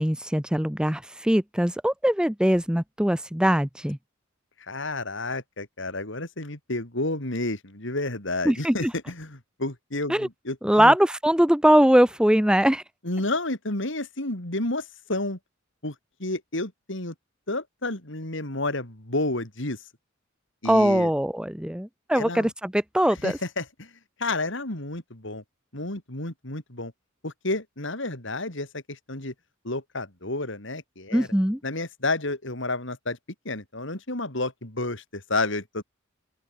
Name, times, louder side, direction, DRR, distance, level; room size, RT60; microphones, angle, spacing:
voice 1, 0.0-4.0 8.4-8.9 10.1-10.3 10.6-12.8 20.6-23.4 31.1-31.6, equal, 5° right, 0.9 m, -21 dB
voice 2, 4.7-10.9 13.0-15.4 15.8-15.9 16.2-17.1 17.5-19.8 20.6-21.1 22.2-22.5 23.2-23.9 24.2-25.4 25.7-26.9 27.2-29.3 29.6-31.3 31.6-33.2 33.4-35.8, left 2 dB, 65° left, 4.5 m, -30 dB
open air
head